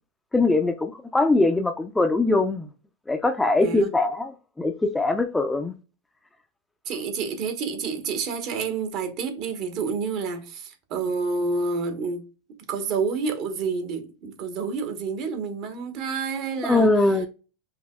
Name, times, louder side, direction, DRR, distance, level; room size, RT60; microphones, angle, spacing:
voice 1, 0.3-2.7 3.1-4.3 4.6-5.7 16.6-17.3, left 2 dB, 10° left, 0.5 m, -22 dB
voice 2, 6.9-12.2 12.7-17.1, right 4 dB, 50° right, 1.1 m, -29 dB
5.3 x 2.8 x 2.3 m
hypercardioid pair, 105°, 0 cm